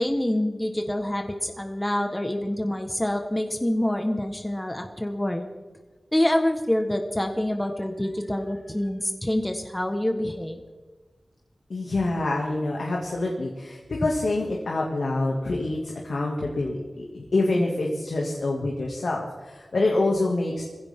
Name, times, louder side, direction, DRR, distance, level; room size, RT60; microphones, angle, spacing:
voice 1, 0.0-5.5 6.1-10.6, left 1 dB, 15° left, 4 dB, 1.4 m, -26 dB
voice 2, 11.7-20.6, left 2 dB, 85° left, -2 dB, 2.3 m, -26 dB
21.0 x 16.0 x 3.8 m, 1.3 s
wide cardioid pair, 80°, 0 cm